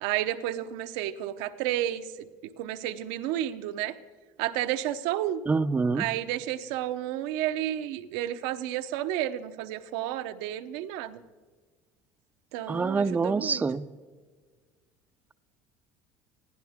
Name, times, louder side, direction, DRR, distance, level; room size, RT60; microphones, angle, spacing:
voice 1, 0.0-2.1 2.6-3.9 4.4-5.4 5.9-11.2 12.5-13.6, right 12 dB, 80° right, 10 dB, 0.9 m, -31 dB
voice 2, 5.5-6.0 12.7-13.8, right 4 dB, 20° right, 13 dB, 0.6 m, -26 dB
21.5 x 16.0 x 3.6 m, 1.4 s
cardioid pair, 125°, 9 cm